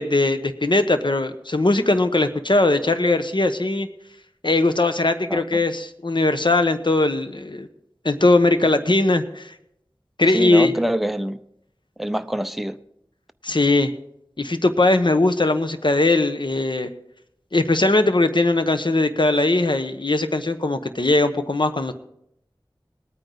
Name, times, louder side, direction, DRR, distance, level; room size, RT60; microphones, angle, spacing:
voice 1, 0.0-3.9 4.4-7.7 8.0-9.5 10.2-10.7 13.4-13.9 14.4-16.9 17.5-21.9, left 2 dB, 60° left, 9 dB, 1.0 m, -20 dB
voice 2, 10.3-11.4 12.0-12.8, right 1 dB, ahead, 9 dB, 0.6 m, -25 dB
19.5 x 9.2 x 3.9 m, 0.76 s
wide cardioid pair, 45°, 9 cm